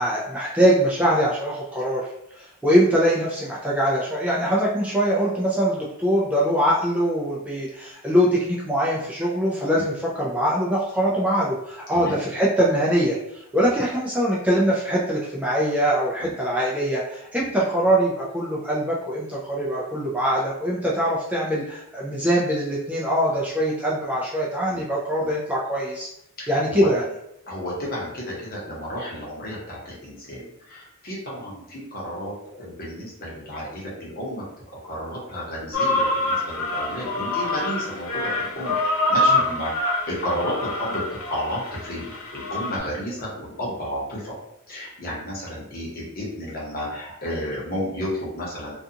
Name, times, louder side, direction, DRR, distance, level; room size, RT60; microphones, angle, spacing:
voice 1, 0.0-2.0 2.3-26.1 26.5-27.0 39.3-39.4, equal, 5° right, -6 dB, 0.4 m, -23 dB
voice 2, 26.4-26.9 27.5-34.4 34.8-44.4 44.7-48.7, equal, 45° left, -5 dB, 1.0 m, -32 dB
sound 1, 35.7-42.8, left 2 dB, 85° left, 0.6 m, -25 dB
2.5 x 2.3 x 2.7 m, 0.82 s
head